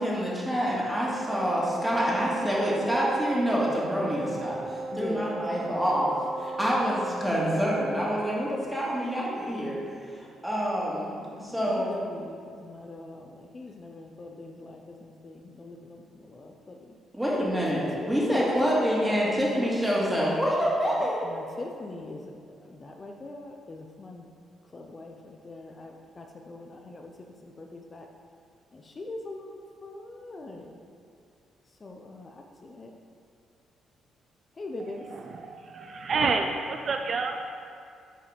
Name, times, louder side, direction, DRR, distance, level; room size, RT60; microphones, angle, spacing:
voice 1, 0.0-9.8 10.1-12.0 17.1-21.3, equal, 5° right, -5 dB, 2.0 m, -27 dB
Wind instrument woodwind instrument, 0.8-8.1, right 3 dB, 75° right, 1.4 m, -36 dB
voice 2, 4.9-5.8 11.4-16.9 17.5-19.4 21.0-24.3 24.7-27.1 27.4-28.1 28.7-30.8 31.8-32.9 34.6-35.1, left 2 dB, 35° left, 2 dB, 0.5 m, -42 dB
voice 3, 34.8-37.4, right 4 dB, 50° right, 5 dB, 0.4 m, -29 dB
7.3 x 4.7 x 5.1 m, 2.4 s
cardioid pair, 90°, 0 cm